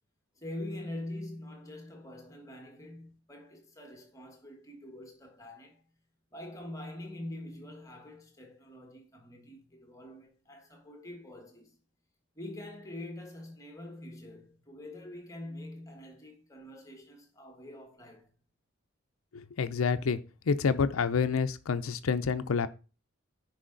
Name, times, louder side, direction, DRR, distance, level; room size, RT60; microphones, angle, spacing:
voice 1, 0.3-5.8 6.3-11.8 12.3-18.3, left 1 dB, 15° left, 1.5 m, -44 dB
voice 2, 19.3-20.2 20.5-22.7, left 5 dB, 85° left, 0.5 m, -28 dB
10.0 x 4.9 x 3.8 m
head